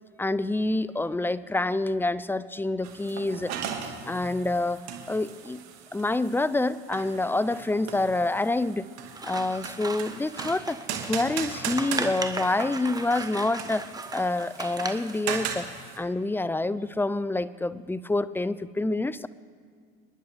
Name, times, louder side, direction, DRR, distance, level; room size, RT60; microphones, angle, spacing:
voice 1, 0.2-3.5 4.1-5.6 5.9-8.9 9.2-10.8 11.1-15.7 16.0-19.3, left 2 dB, 10° left, 17 dB, 0.4 m, -27 dB
sound 1, 2.8-16.0, right 8 dB, 65° right, 1.9 m, -38 dB
Scissors, 9.1-15.2, right 3 dB, 15° right, 1.1 m, -37 dB
28.5 x 10.5 x 3.4 m, 2.1 s
supercardioid pair, 85°, 29 cm